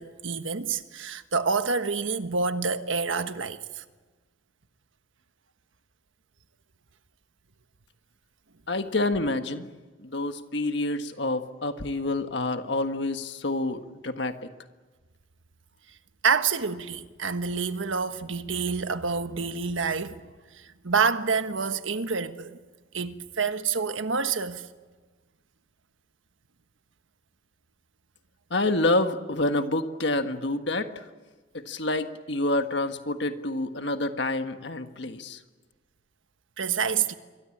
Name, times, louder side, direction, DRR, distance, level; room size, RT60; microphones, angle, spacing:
voice 1, 0.0-3.8 16.2-20.2 20.6-22.6 22.9-24.7 36.6-37.1, right 5 dB, 75° right, 1.3 m, -28 dB
voice 2, 8.7-9.7 10.0-14.5 28.5-31.0 31.5-35.4, left 2 dB, 60° left, 1.6 m, -28 dB
26.5 x 23.0 x 8.7 m
head